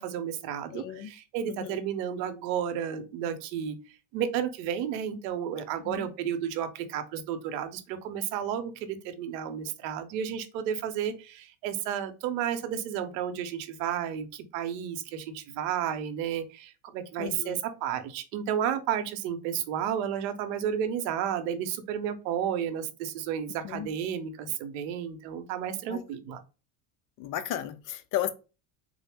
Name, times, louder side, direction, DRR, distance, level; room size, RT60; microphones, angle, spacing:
voice 1, 0.0-3.8 4.1-26.4, right 9 dB, 85° right, 0.8 m, -32 dB
voice 2, 0.7-1.1 1.4-1.8 5.8-6.1 17.2-17.6 23.6-23.9 25.9-26.0 27.2-28.3, left 11 dB, 45° left, 0.4 m, -34 dB
3.7 x 2.0 x 3.3 m
supercardioid pair, 120°, 49 cm